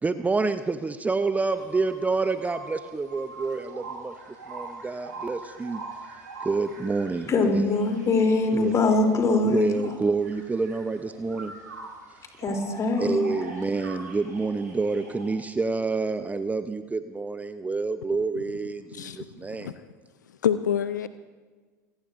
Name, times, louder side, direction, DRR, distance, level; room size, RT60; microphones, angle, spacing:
voice 1, 0.0-4.1 4.5-5.8 6.4-7.3 8.5-8.7 9.4-11.5 13.0-19.8, right 3 dB, 15° right, 10 dB, 0.7 m, -28 dB
sound 1, 1.3-15.4, right 3 dB, 90° right, 5.7 m, -43 dB
voice 2, 7.3-9.8 12.4-13.3, left 3 dB, 35° left, 3 dB, 3.2 m, -22 dB
voice 3, 18.9-19.3 19.6-19.9 20.4-21.1, left 9 dB, 85° left, 13 dB, 0.5 m, -27 dB
26.5 x 18.5 x 2.6 m, 1.4 s
hypercardioid pair, 75°, 10 cm